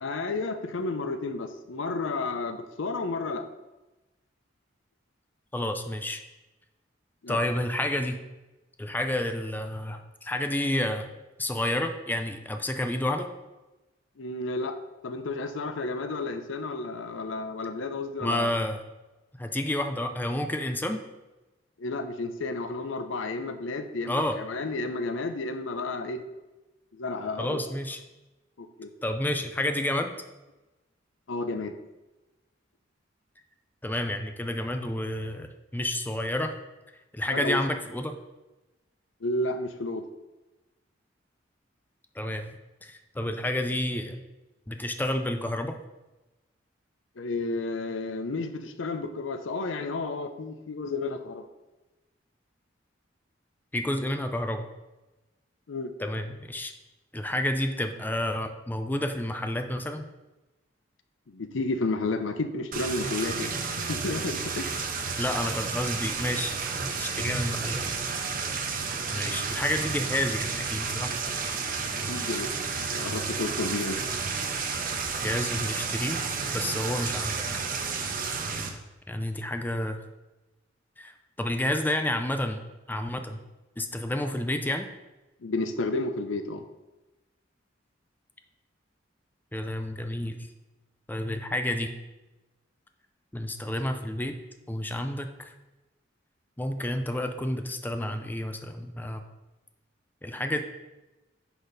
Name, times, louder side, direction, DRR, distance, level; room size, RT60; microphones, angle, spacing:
voice 1, 0.0-3.5 7.2-7.4 14.2-14.8 15.0-18.5 21.8-26.2 26.9-27.6 28.6-28.9 31.3-31.7 37.3-37.6 39.2-40.0 47.2-51.4 55.7-55.9 61.3-64.9 67.2-67.3 72.1-74.0 85.4-86.6, left 3 dB, 85° left, 9 dB, 0.6 m, -32 dB
voice 2, 5.5-6.2 7.3-8.2 8.8-11.1 11.4-13.3 18.2-18.8 19.4-21.0 24.1-24.4 27.4-28.0 29.0-30.1 33.8-35.5 35.7-36.5 37.1-38.1 42.2-42.5 42.8-44.2 44.7-45.8 53.7-54.7 56.0-56.7 57.1-60.1 65.2-66.5 66.9-67.9 69.1-71.1 75.2-76.2 76.5-77.6 79.1-80.0 81.0-81.1 81.4-83.4 83.8-84.9 89.5-90.4 91.1-91.9 93.3-94.4 94.7-95.5 96.6-99.2 100.2-100.6, left 1 dB, 10° left, 7 dB, 0.5 m, -30 dB
sound 1, 62.7-78.7, right 5 dB, 45° right, 0.8 m, -31 dB
10.0 x 4.1 x 4.0 m, 1.1 s
head